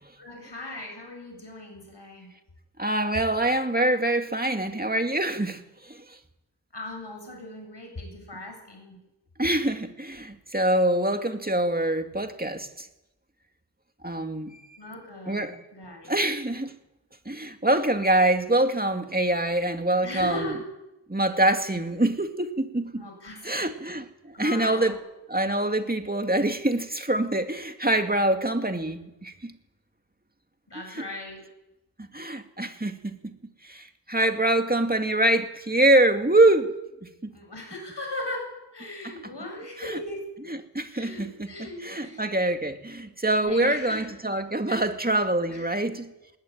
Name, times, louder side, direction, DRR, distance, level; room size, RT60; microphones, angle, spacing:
voice 1, 0.2-2.3 6.7-9.0 14.8-16.2 20.0-20.6 23.0-23.7 24.3-25.0 30.7-31.4 37.3-40.2 40.9-42.3 43.4-44.1 44.7-44.8 45.5-45.7, left 1 dB, 70° left, 7.8 m, -38 dB
voice 2, 2.8-5.6 5.9-6.0 9.4-12.9 14.0-14.6 15.3-15.6 16.1-16.7 17.3-20.5 21.1-23.0 23.4-25.0 25.3-29.5 31.0-31.1 32.0-33.2 33.6-36.7 37.2-37.3 39.0-39.1 39.9-40.0 40.5-41.3 41.8-46.1, right 1 dB, 20° right, 2.3 m, -25 dB
20.5 x 19.5 x 8.8 m
wide cardioid pair, 50°, 44 cm